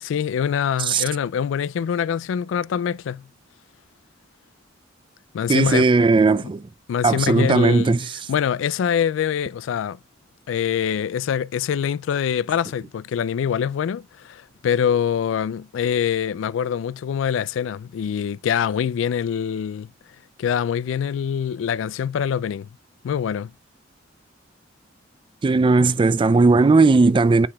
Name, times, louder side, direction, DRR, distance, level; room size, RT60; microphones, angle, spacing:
voice 1, 0.0-3.2 5.3-5.8 6.9-8.0 8.3-10.0 10.5-19.9 20.4-22.7 23.0-23.5, left 8 dB, 75° left, 0.3 m, -24 dB
voice 2, 5.5-6.7 7.0-8.1 25.4-27.5, right 3 dB, 25° right, 0.3 m, -17 dB
8.5 x 4.8 x 2.3 m
head